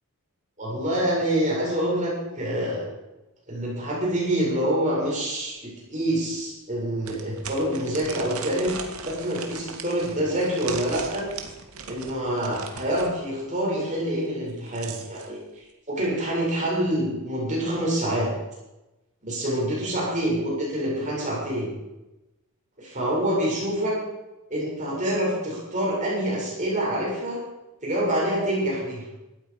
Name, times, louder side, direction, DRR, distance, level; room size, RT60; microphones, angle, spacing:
voice 1, 0.6-2.9 3.5-5.6 5.9-8.8 9.0-11.3 11.8-15.4 15.9-18.3 19.2-21.7 22.8-24.0 24.5-27.4 27.8-29.0, right 1 dB, 35° right, -5 dB, 7.6 m, -26 dB
sound 1, 5.6-5.7 6.1-6.2 7.0-13.1 14.4-15.3, right 5 dB, 80° right, 2.2 m, -38 dB
18.0 x 14.0 x 5.4 m, 0.99 s
head